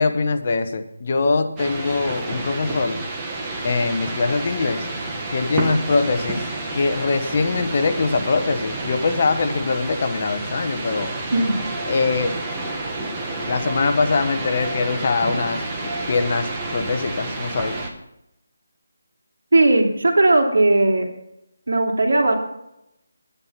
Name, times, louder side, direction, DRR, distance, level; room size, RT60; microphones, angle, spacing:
voice 1, 0.0-3.0 3.6-4.9 5.3-6.5 6.7-11.1 11.9-12.3 13.5-17.7, left 4 dB, 35° left, 7 dB, 1.1 m, -22 dB
sound 1, 1.6-17.9, right 2 dB, 10° right, 1.2 m, -29 dB
voice 2, 11.3-11.6 19.5-21.1 21.7-22.3, right 2 dB, 85° right, 2 dB, 3.0 m, -17 dB
10.5 x 10.5 x 5.8 m, 0.82 s
figure-of-eight pair, 175°, 0 cm